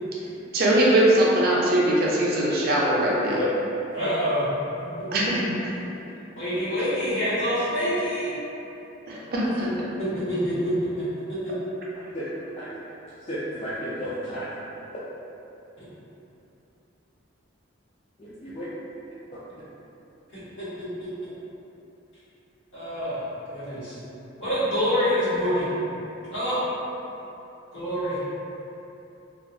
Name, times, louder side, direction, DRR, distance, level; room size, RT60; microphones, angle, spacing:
voice 1, 0.5-3.4 5.1-5.7 9.1-9.7, right 1 dB, 50° right, -5 dB, 0.4 m, -21 dB
voice 2, 3.9-4.8 6.3-8.3 9.6-9.7 10.0-11.5 20.3-20.7 21.0-21.1 22.7-24.0 24.4-25.7 26.3-26.6 27.7-28.2, equal, 70° left, -13 dB, 1.2 m, -26 dB
voice 3, 13.3-14.5 18.2-18.6 19.3-19.4, equal, 30° left, -10 dB, 0.3 m, -32 dB
2.5 x 2.2 x 2.6 m, 3.0 s
head